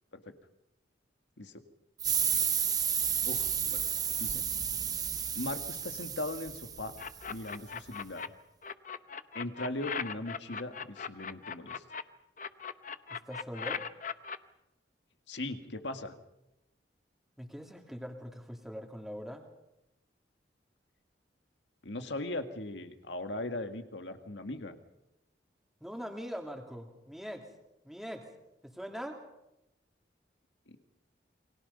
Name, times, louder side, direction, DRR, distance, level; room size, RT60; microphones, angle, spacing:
sound 1, 2.0-7.3, right 8 dB, 20° right, 1.0 m, -32 dB
voice 1, 3.2-3.8 4.2-4.4 5.3-6.9 7.3-8.3 9.3-11.8 15.3-16.1 21.8-24.8 30.7-30.8, left 2 dB, 75° left, 7 dB, 1.9 m, -39 dB
sound 2, 7.0-8.3 8.6-12.0 12.4-14.4, left 6 dB, 45° left, 0.8 m, -38 dB
voice 2, 13.1-13.8 17.4-19.4 25.8-27.5 27.8-28.3 28.6-29.2, equal, ahead, 2 dB, 2.8 m, -42 dB
29.0 x 23.5 x 5.5 m, 0.92 s
head